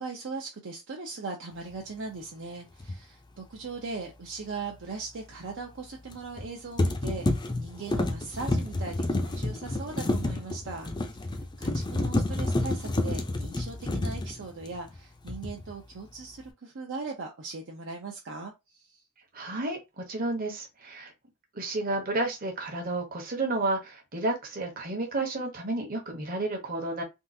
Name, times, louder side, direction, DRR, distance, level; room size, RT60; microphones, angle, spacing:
voice 1, 0.0-19.0, right 4 dB, 60° right, 0.6 m, -39 dB
sound 1, 2.8-3.0 6.1-6.5 6.8-15.0 15.3-15.7, left 2 dB, 20° left, 0.5 m, -29 dB
voice 2, 19.3-21.1 21.5-27.0, right 2 dB, 40° right, 1.0 m, -31 dB
3.6 x 2.4 x 2.7 m
head